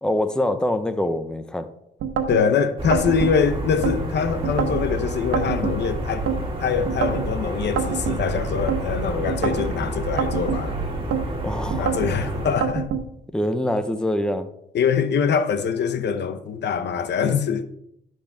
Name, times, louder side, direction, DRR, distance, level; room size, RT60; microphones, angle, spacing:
voice 1, 0.0-1.7 11.4-11.9 13.3-14.5, left 1 dB, 5° left, 0.9 m, -24 dB
sound 1, 2.0-2.4 2.9-4.0 4.4-4.8 5.3-6.4 6.8-7.3 7.8-8.8 9.3-9.7 10.2-11.2 11.7-12.1 12.6-13.0, right 7 dB, 80° right, 1.2 m, -25 dB
voice 2, 2.3-6.3 6.6-10.8 11.8-12.9 14.7-17.6, left 6 dB, 60° left, 0.9 m, -23 dB
sound 2, 2.8-12.6, right 1 dB, 25° right, 2.9 m, -29 dB
12.0 x 7.7 x 3.6 m
cardioid pair, 90°, 20 cm